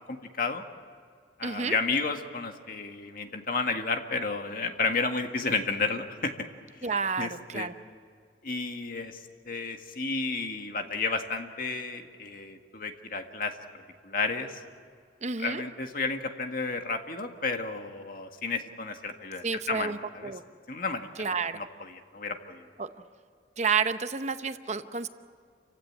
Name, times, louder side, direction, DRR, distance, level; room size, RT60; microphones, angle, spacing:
voice 1, 0.1-0.6 1.4-6.3 6.8-6.9 7.2-7.7 8.4-9.2 9.5-13.5 14.0-14.5 15.4-20.3 20.7-21.1 21.5-21.6 22.1-22.6, left 4 dB, 50° left, 5 dB, 1.7 m, -32 dB
voice 2, 1.4-1.7 6.8-7.8 15.2-15.6 19.4-20.4 21.2-21.6 22.8-22.9 23.6-25.1, right 5 dB, 40° right, 10 dB, 0.8 m, -30 dB
28.5 x 16.0 x 9.8 m, 2.1 s
head